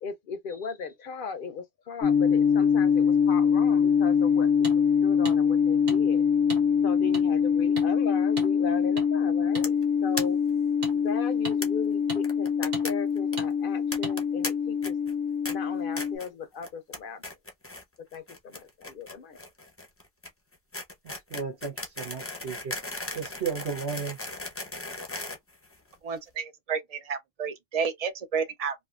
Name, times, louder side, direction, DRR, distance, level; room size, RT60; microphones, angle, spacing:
voice 1, 0.0-4.7 5.0-6.3 6.8-9.8 10.0-10.4 10.9-15.0 15.5-17.2 18.0-19.4, left 5 dB, 60° left, 0.7 m, -37 dB
sound 1, 2.0-16.2, left 7 dB, 80° left, 1.0 m, -24 dB
sound 2, 4.6-4.8 5.3-5.4 5.9-6.0 6.5-6.6 7.1-7.2 7.8-7.9 8.4-8.5 9.0-9.1 9.5-9.7 10.2-10.3 10.8-10.9 11.4-11.6 12.1-12.2 12.7-12.9 13.4-13.5 14.0-14.2, right 3 dB, 65° right, 1.6 m, -36 dB
sound 3, 9.6-9.8 10.1-10.2 10.5-10.6 10.8-10.9 11.6-11.7 12.2-12.9 13.2-13.4 13.9-14.5 14.8-15.1 15.4-15.5 16.0-16.3 16.6-17.0 17.2-17.8 18.1-26.2, left 2 dB, 15° left, 0.5 m, -36 dB
voice 2, 21.0-22.8 23.1-24.2, right 6 dB, 80° right, 1.3 m, -34 dB
voice 3, 26.0-28.9, right 6 dB, 45° right, 0.5 m, -31 dB
3.3 x 2.6 x 2.4 m
omnidirectional pair, 1.1 m